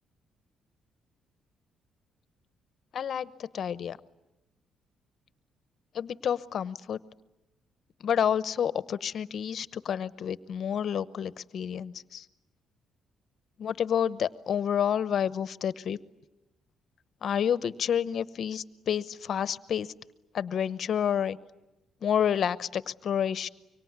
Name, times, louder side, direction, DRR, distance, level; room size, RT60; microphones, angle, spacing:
voice 1, 2.9-4.0 5.9-7.0 8.0-12.3 13.6-16.0 17.2-19.9 20.3-21.4 22.0-23.5, left 8 dB, 60° left, 16 dB, 0.9 m, -29 dB
24.5 x 24.5 x 9.6 m, 0.98 s
cardioid pair, 90°, 0 cm